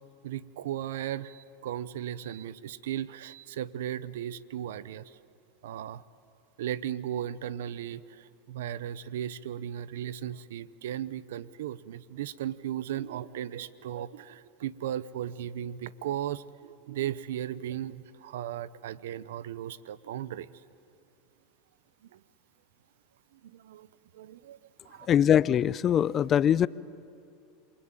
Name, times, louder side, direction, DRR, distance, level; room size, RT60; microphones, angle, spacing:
voice 1, 0.2-5.2 5.6-6.0 6.6-20.5 22.1-22.2 23.3-23.9 24.1-24.6 24.8-25.3 26.5-26.6, right 11 dB, 80° right, 18 dB, 0.8 m, -36 dB
voice 2, 25.1-26.7, left 9 dB, 35° left, 20 dB, 0.6 m, -22 dB
28.0 x 23.0 x 9.0 m, 2.6 s
hypercardioid pair, 105°, 0 cm